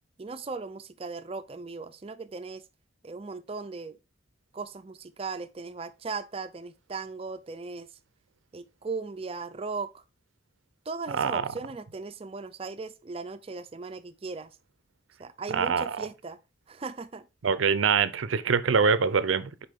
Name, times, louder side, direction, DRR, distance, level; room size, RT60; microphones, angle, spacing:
voice 1, 0.2-2.6 3.0-4.0 4.5-8.0 8.5-10.0 10.9-14.6 15.2-16.4 16.7-17.3, right 4 dB, 30° right, 0.4 m, -37 dB
voice 2, 15.5-16.0 17.4-19.6, right 5 dB, 90° right, 0.5 m, -24 dB
6.5 x 4.6 x 3.5 m
head